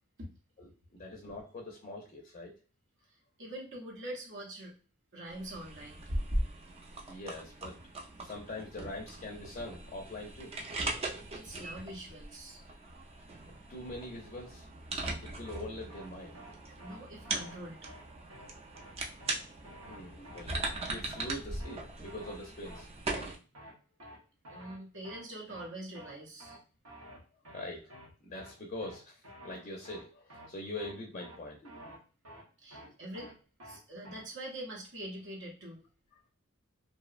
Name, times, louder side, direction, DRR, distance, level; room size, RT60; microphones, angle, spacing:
voice 1, 0.6-2.5 7.1-7.9 8.2-10.5 13.7-14.7 14.9-16.4 16.9-17.0 19.9-23.4 27.5-28.0 28.2-31.9 32.8-32.9, left 1 dB, 35° left, 0 dB, 0.5 m, -43 dB
voice 2, 3.1-4.7 5.1-6.0 8.1-8.3 11.3-12.6 16.8-17.8 24.5-26.6 32.6-33.3 33.6-35.8, right 1 dB, 60° right, -2 dB, 0.7 m, -44 dB
sound 1, 5.2-23.3, right 2 dB, 30° right, 0.4 m, -40 dB
sound 2, 15.0-15.2 15.4-15.6 15.9-16.1 16.3-16.5 16.8-17.0 17.2-17.6 17.8-18.0 18.3-18.5 18.7-18.9 19.2-19.4 19.6-20.0 20.2-20.4 20.7-20.9 21.1-21.3 21.6-21.8 22.0-22.4 22.6-22.8 23.1-23.3 23.5-23.7 24.0-24.2 24.4-24.8 25.0-25.2 25.5-25.7 25.9-26.1 26.4-26.6 26.8-27.2 27.4-27.6 27.9-28.1 28.3-28.5 28.8-29.0 29.2-29.6 29.8-30.0 30.3-30.5 30.7-30.9 31.2-31.4 31.6-32.0 32.2-32.4 32.7-32.9 33.1-33.3 33.6-33.8 34.0-34.2, right 1 dB, 90° right, 0.9 m, -50 dB
2.7 x 2.0 x 2.4 m, 0.36 s
head